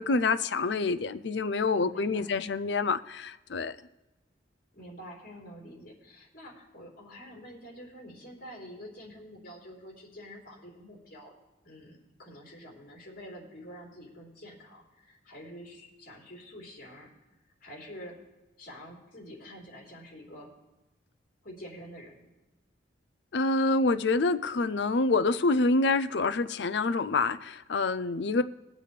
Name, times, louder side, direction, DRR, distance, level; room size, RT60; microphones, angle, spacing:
voice 1, 0.0-3.7 23.3-28.4, left 3 dB, 65° left, 13 dB, 0.5 m, -27 dB
voice 2, 1.7-2.4 4.7-11.3 11.6-17.1 17.6-18.2 18.6-20.5 21.4-22.2, equal, 50° left, -3 dB, 3.8 m, -47 dB
21.0 x 7.6 x 3.3 m, 1.0 s
head